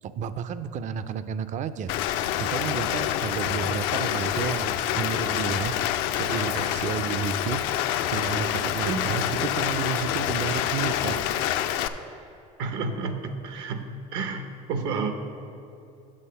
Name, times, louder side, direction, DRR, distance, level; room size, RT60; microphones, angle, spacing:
voice 1, 0.0-7.6 8.1-11.3, right 7 dB, 40° right, 13 dB, 0.4 m, -32 dB
Rain, 1.9-11.9, left 11 dB, 75° left, 0.4 m, -27 dB
voice 2, 8.9-9.3 12.6-13.8 14.1-15.1, right 4 dB, 75° right, 7 dB, 0.8 m, -30 dB
7.4 x 6.2 x 5.7 m, 2.7 s
supercardioid pair, 105°, 19 cm